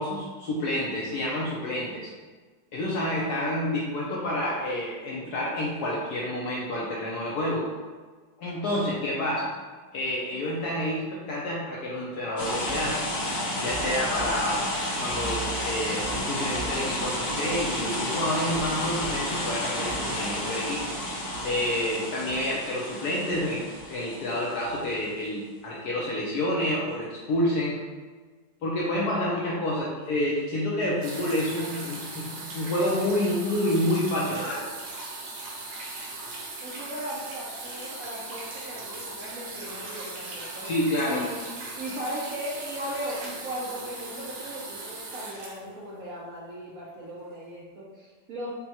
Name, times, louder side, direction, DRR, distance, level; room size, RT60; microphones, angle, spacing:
voice 1, 0.0-2.1 2.7-7.7 8.4-9.5 9.9-13.0 13.6-14.7 15.0-27.8 28.6-34.6 40.6-41.2, left 1 dB, 75° left, -5 dB, 0.9 m, -29 dB
sound 1, 12.4-24.9, equal, 45° left, 0.7 m, -31 dB
sound 2, 31.0-46.4 47.3-47.4, right 3 dB, 85° right, 1.6 m, -39 dB
voice 2, 36.6-40.7 41.1-41.4 41.8-48.5, equal, 65° right, -6 dB, 0.8 m, -37 dB
5.3 x 2.2 x 2.9 m, 1.4 s
omnidirectional pair, 2.2 m